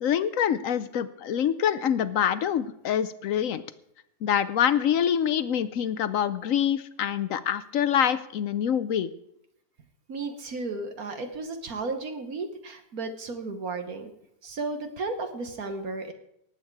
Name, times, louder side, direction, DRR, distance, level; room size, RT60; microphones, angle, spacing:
voice 1, 0.0-3.6 4.2-9.1, left 9 dB, 65° left, 14 dB, 0.9 m, -25 dB
voice 2, 10.1-14.1 14.4-16.1, right 3 dB, 60° right, 6 dB, 1.6 m, -34 dB
18.5 x 8.4 x 4.7 m, 0.77 s
omnidirectional pair, 1.8 m